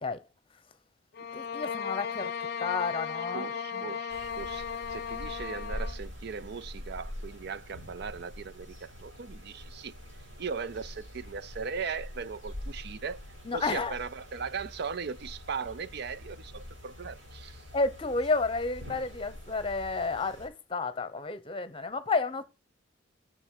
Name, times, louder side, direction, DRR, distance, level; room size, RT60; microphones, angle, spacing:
sound 1, 1.1-6.0, left 7 dB, 55° left, 0.6 m, -36 dB
voice 1, 1.3-2.3 2.6-3.8 13.4-14.0 17.7-22.4, left 3 dB, 30° left, 0.9 m, -31 dB
voice 2, 3.3-9.9 10.4-13.2 13.5-17.6, right 5 dB, 60° right, 0.5 m, -38 dB
sound 2, 4.1-20.5, left 1 dB, 80° right, 5.6 m, -45 dB
7.9 x 6.8 x 5.7 m
head